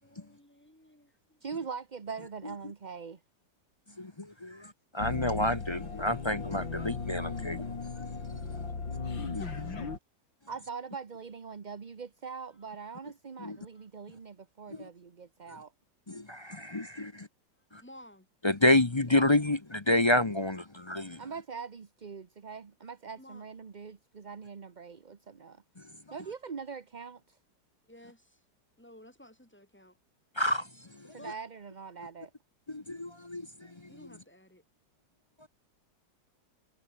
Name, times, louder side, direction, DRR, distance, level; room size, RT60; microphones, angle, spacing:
voice 1, 0.0-1.4 4.0-4.7 9.5-9.7 13.7-13.8 16.8-17.2 17.8-18.3 23.2-23.5 27.9-28.4 28.8-30.0 31.2-31.4 33.9-34.6, left 1 dB, 5° left, 5.4 m, -55 dB
voice 2, 1.4-3.2 10.5-15.7 19.1-19.3 21.2-25.6 26.1-27.4 31.1-32.3, right 5 dB, 35° right, 0.8 m, -42 dB
voice 3, 4.0-7.7 8.2-8.7 9.3-9.8 13.4-13.6 14.7-14.8 16.1-17.3 17.7-17.8 18.4-21.2 30.4-30.7 30.9-31.2 32.7-33.9 35.4-35.5, left 1 dB, 25° left, 0.6 m, -29 dB
sound 1, 5.0-10.0, left 4 dB, 85° left, 4.2 m, -37 dB
omnidirectional pair, 2.0 m